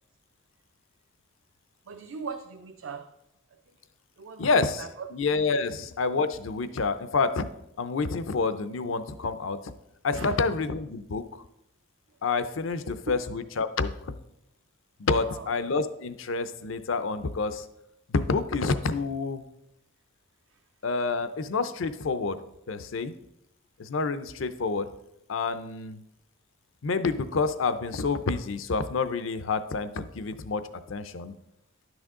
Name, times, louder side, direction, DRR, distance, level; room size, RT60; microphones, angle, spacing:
voice 1, 1.9-3.1 4.2-5.1 10.1-10.4 12.7-12.8 13.1-13.2 15.2-15.5, right 5 dB, 85° right, 6 dB, 0.5 m, -40 dB
voice 2, 4.4-4.8 5.1-7.5 7.8-9.6 10.0-11.4 12.2-13.9 15.0-17.6 18.1-19.5 20.8-22.4 22.7-23.1 23.8-24.9 25.3-26.0 26.8-30.6 30.9-31.3, left 4 dB, 80° left, 12 dB, 0.6 m, -28 dB
11.0 x 6.2 x 3.7 m, 0.83 s
head